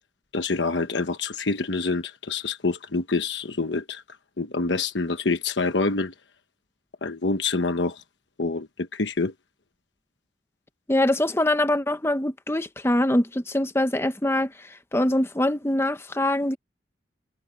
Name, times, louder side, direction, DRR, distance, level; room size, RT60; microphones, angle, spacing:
voice 1, 0.3-4.0 4.4-6.1 7.0-8.0 8.4-9.3, left 3 dB, 85° left, 1.1 m, -26 dB
voice 2, 10.9-14.5 14.9-16.6, left 1 dB, 15° left, 1.0 m, -23 dB
head